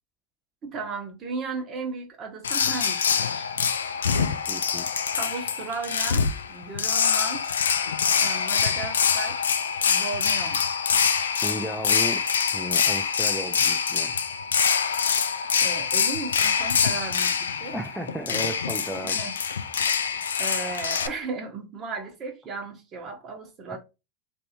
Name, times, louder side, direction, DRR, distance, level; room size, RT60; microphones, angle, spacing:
voice 1, 0.6-3.4 5.2-7.5 8.2-9.6 9.9-10.6 15.6-17.3 17.6-17.8 19.0-19.3 20.4-23.8, right 4 dB, 35° right, 1.2 m, -35 dB
sound 1, 2.4-21.1, left 6 dB, 80° left, 0.3 m, -25 dB
voice 2, 4.5-4.9 11.4-12.3 12.5-14.1 17.7-19.2 19.8-20.0, equal, 5° right, 0.5 m, -34 dB
3.2 x 2.6 x 2.9 m
figure-of-eight pair, 85°, 0 cm